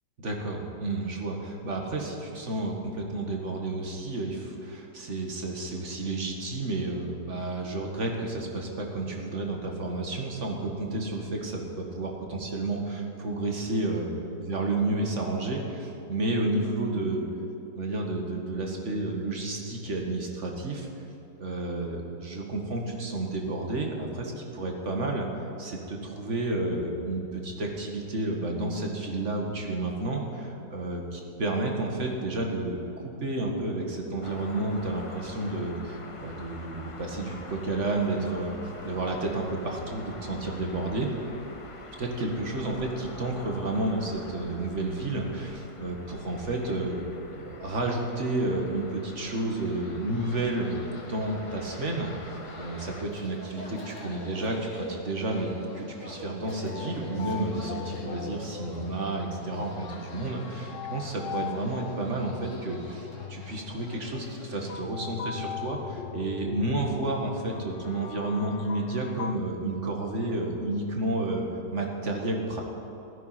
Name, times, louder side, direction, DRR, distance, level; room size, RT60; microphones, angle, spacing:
voice 1, 0.2-14.1 14.4-17.3 17.8-20.9 21.4-38.6 38.8-41.1 42.0-47.0 47.3-50.8 51.0-63.0 63.3-71.5 71.7-72.6, right 2 dB, 45° right, 1 dB, 2.1 m, -31 dB
sound 1, 34.2-53.0, left 3 dB, 30° left, 0.6 m, -45 dB
sound 2, 49.0-64.8, left 1 dB, 45° left, 2.3 m, -46 dB
sound 3, 56.6-69.4, left 9 dB, 70° left, 0.7 m, -40 dB
15.5 x 13.0 x 5.9 m, 2.9 s
omnidirectional pair, 1.8 m